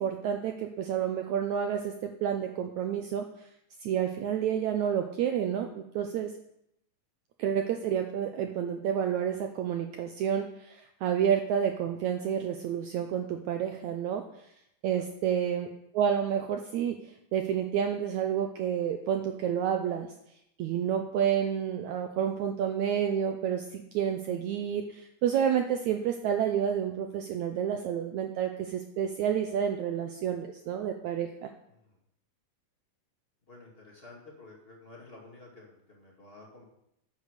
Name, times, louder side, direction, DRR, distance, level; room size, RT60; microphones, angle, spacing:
voice 1, 0.0-3.5 3.8-6.3 7.4-14.2 14.8-15.7 15.9-20.1 20.6-31.5, right 8 dB, 85° right, 5 dB, 1.6 m, -29 dB
voice 2, 33.5-36.6, left 2 dB, 20° left, -1 dB, 1.7 m, -51 dB
10.5 x 7.0 x 6.6 m, 0.78 s
omnidirectional pair, 4.2 m